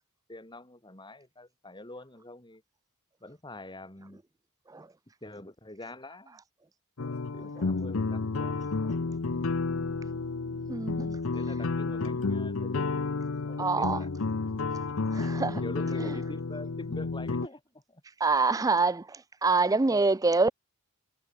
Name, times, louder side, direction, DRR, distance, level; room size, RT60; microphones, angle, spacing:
voice 1, 0.3-2.6 3.2-4.2 5.2-6.4 7.3-8.7 9.3-9.4 10.5-10.6 11.3-13.0 13.5-14.1 15.6-17.6 17.9-18.0, left 1 dB, 20° left, 3.5 m, -45 dB
sound 1, 7.0-17.5, left 3 dB, 65° left, 0.7 m, -31 dB
voice 2, 10.7-11.2 13.6-14.0 15.1-15.6 16.0-16.1 18.2-20.5, right 3 dB, 15° right, 0.4 m, -26 dB
head